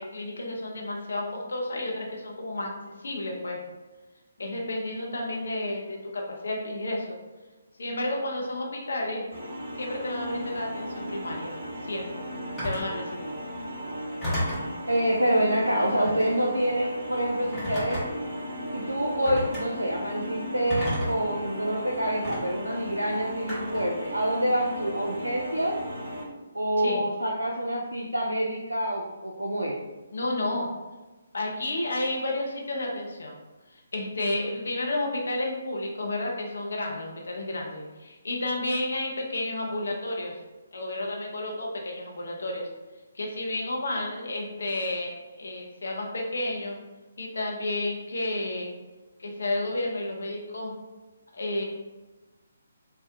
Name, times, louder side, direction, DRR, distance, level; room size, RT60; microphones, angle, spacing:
voice 1, 0.0-2.7 3.0-3.6 4.4-7.2 7.8-9.2 9.8-11.6 11.8-12.2 12.6-13.3 26.8-27.0 30.1-30.7 31.3-33.4 33.7-40.4 40.7-42.7 43.1-46.8 47.2-48.7 49.2-50.7 51.3-51.6, left 1 dB, 60° left, 0 dB, 0.5 m, -31 dB
sound 1, 9.3-26.2, equal, 55° right, 1.1 m, -36 dB
Telephone, 12.6-12.9 14.2-14.7 16.0-16.3 17.5-18.3 19.2-19.6 20.7-21.3 22.2-22.4 23.5-23.9, equal, 10° left, 1.0 m, -31 dB
voice 2, 14.9-18.0 18.7-25.8 26.5-29.8, equal, 80° right, -2 dB, 0.3 m, -27 dB
2.7 x 2.0 x 2.3 m, 1.2 s
figure-of-eight pair, 140°, 0 cm